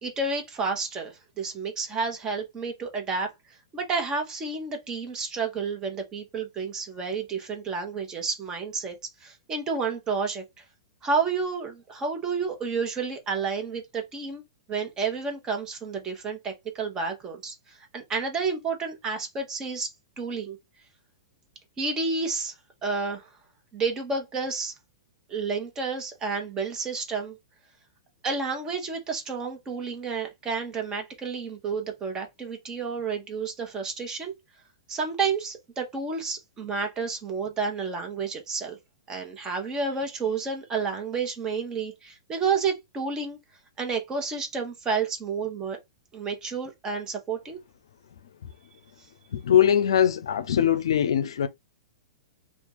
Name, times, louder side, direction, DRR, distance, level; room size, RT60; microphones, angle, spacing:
voice 1, 0.0-3.3 3.7-10.4 11.0-14.4 14.7-19.9 20.2-20.6 21.8-22.5 22.8-23.3 23.7-24.7 25.3-27.4 28.2-34.3 34.9-38.8 39.1-43.4 43.8-45.8 46.1-47.6, right 4 dB, 25° right, 1.3 m, -30 dB
voice 2, 49.3-51.5, left 9 dB, 75° left, 0.5 m, -21 dB
2.8 x 2.5 x 3.9 m
hypercardioid pair, 110°, 3 cm